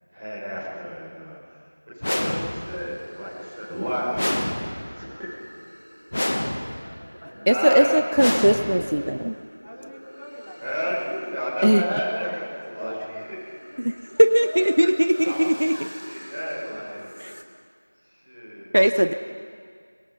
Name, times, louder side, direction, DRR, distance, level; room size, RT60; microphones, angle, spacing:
voice 1, 0.1-1.6 1.9-5.6 7.3-8.0 10.6-12.3 12.6-12.9 15.1-17.2 18.1-19.0, equal, 20° right, -9 dB, 5.9 m, -31 dB
sound 1, 2.0-2.9 4.1-5.1 6.1-6.9 8.2-9.1, left 1 dB, 25° left, 0.9 m, -27 dB
sound 2, 2.0-17.4, equal, 90° right, 2.7 m, -46 dB
voice 2, 6.1-7.4 8.4-9.2 9.6-13.1 13.6-14.9 15.7-15.9, equal, 50° left, -2 dB, 3.2 m, -43 dB
voice 3, 7.5-9.3 11.6-11.8 13.8-13.9 14.2-15.8 17.2-17.3 18.7-19.1, equal, 40° right, 11 dB, 0.5 m, -19 dB
23.5 x 20.5 x 5.6 m, 2.1 s
figure-of-eight pair, 180°, 0 cm